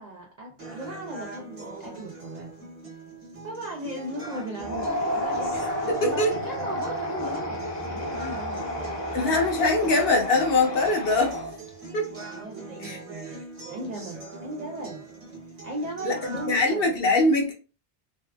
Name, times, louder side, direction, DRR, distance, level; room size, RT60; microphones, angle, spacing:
voice 1, 0.0-2.5 3.4-9.0 12.3-15.1 15.6-16.9, right 1 dB, 60° right, 0.4 m, -37 dB
sound 1, 0.6-16.6, right 3 dB, 35° right, 0.8 m, -41 dB
sound 2, 4.6-11.8, equal, 30° left, 0.5 m, -31 dB
voice 2, 5.9-6.3 9.1-11.3 11.9-12.1 12.8-13.0 16.0-17.5, left 2 dB, 60° left, 0.8 m, -22 dB
2.6 x 2.3 x 2.2 m
omnidirectional pair, 1.2 m